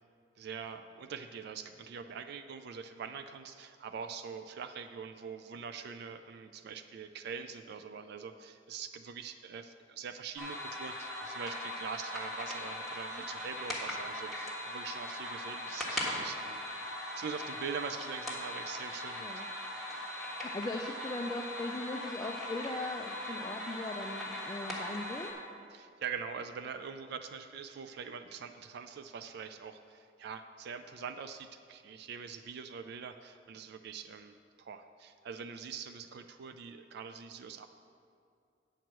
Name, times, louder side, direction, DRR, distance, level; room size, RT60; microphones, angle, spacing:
voice 1, 0.4-16.6 17.2-19.4 25.7-37.7, right 6 dB, 60° right, 9 dB, 0.3 m, -43 dB
sound 1, 10.4-25.3, left 1 dB, ahead, 1.4 m, -39 dB
voice 2, 20.3-25.3, left 2 dB, 20° left, 2 dB, 0.4 m, -39 dB
9.1 x 4.6 x 7.4 m, 2.5 s
head